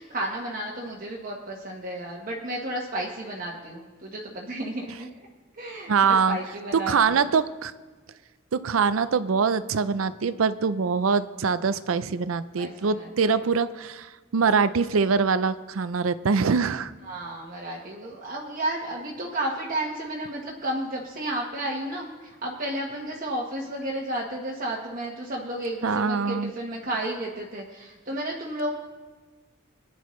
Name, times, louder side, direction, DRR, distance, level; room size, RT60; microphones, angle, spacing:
voice 1, 0.0-5.1 5.5-7.3 12.6-13.4 17.0-28.7, right 1 dB, 45° right, -3 dB, 1.2 m, -32 dB
voice 2, 5.9-6.4 6.7-7.7 8.5-16.9 25.8-26.5, right 5 dB, 80° right, 14 dB, 0.5 m, -23 dB
21.5 x 10.0 x 3.2 m, 1.3 s
head